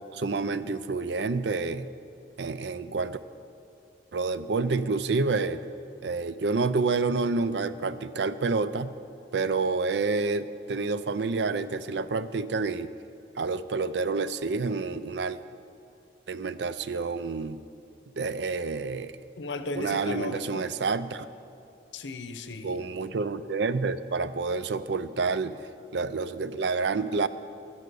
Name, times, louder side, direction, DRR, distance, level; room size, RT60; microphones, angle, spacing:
voice 1, 0.1-1.9 2.4-3.2 4.1-5.6 6.0-9.0 9.3-12.9 13.4-15.4 16.3-17.6 18.2-19.1 19.8-21.3 22.6-25.6 25.9-27.3, right 4 dB, 70° right, 14 dB, 0.5 m, -28 dB
voice 2, 19.4-20.7 21.9-22.9, left 2 dB, 80° left, 10 dB, 0.8 m, -35 dB
12.0 x 10.0 x 6.8 m, 2.6 s
head